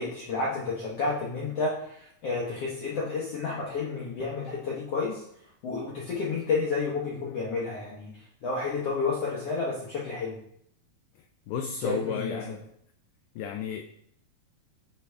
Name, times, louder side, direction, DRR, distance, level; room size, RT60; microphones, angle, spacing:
voice 1, 0.0-5.2 5.6-10.4 11.8-12.4, left 4 dB, 70° left, -5 dB, 1.5 m, -31 dB
voice 2, 11.5-12.6 13.4-13.8, left 7 dB, 90° left, 4 dB, 1.8 m, -32 dB
9.9 x 3.4 x 3.4 m, 0.70 s
omnidirectional pair, 4.2 m